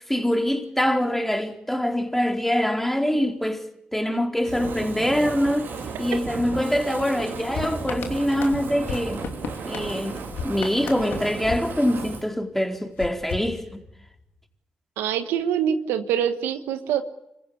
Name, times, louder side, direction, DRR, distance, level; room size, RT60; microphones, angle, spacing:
voice 1, 0.1-3.6 3.9-5.7 6.0-9.2 9.6-13.8, equal, 5° left, 4.2 m, -24 dB
Fire, 4.4-12.3, right 5 dB, 70° right, 3.6 m, -35 dB
sound 1, 7.5-12.4 13.0-14.2, left 5 dB, 75° left, 2.7 m, -36 dB
voice 2, 15.0-17.0, right 9 dB, 85° right, 1.3 m, -25 dB
26.0 x 15.5 x 9.8 m
hypercardioid pair, 40°, 4 cm